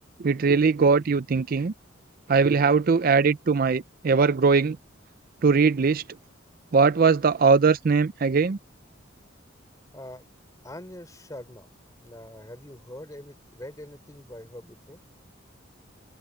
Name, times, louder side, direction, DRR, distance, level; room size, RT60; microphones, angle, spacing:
voice 1, 0.2-1.7 2.3-4.8 5.4-6.0 6.7-8.6, right 5 dB, 50° right, 0.4 m, -20 dB
voice 2, 9.9-10.3 10.6-11.7 12.0-15.0, left 1 dB, 20° left, 3.4 m, -43 dB
open air
head